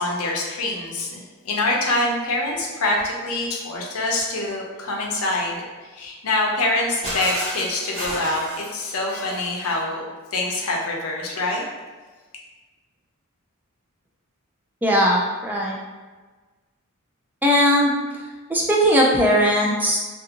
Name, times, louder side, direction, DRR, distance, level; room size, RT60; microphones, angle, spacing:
voice 1, 0.0-10.0 10.3-11.6, left 2 dB, 70° left, -1 dB, 0.6 m, -25 dB
Shatter, 7.0-9.8, equal, 30° right, 1.0 m, -31 dB
voice 2, 14.8-15.8 17.4-17.9 18.5-20.0, equal, 10° right, -2 dB, 0.3 m, -18 dB
2.5 x 2.5 x 2.8 m, 1.3 s
head